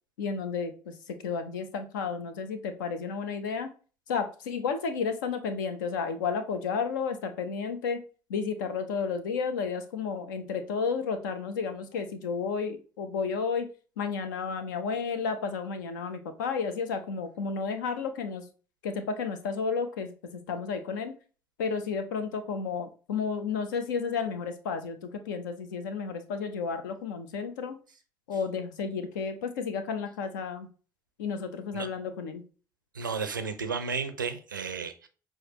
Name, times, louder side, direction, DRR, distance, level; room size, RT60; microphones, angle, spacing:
voice 1, 0.2-3.7 4.1-8.0 8.3-13.7 14.0-18.5 18.8-21.2 21.6-27.8 28.3-30.7 31.2-32.4, left 5 dB, 70° left, 0.6 m, -32 dB
voice 2, 32.9-35.1, right 5 dB, 85° right, 0.4 m, -33 dB
6.3 x 2.2 x 2.9 m
figure-of-eight pair, 50°, 10 cm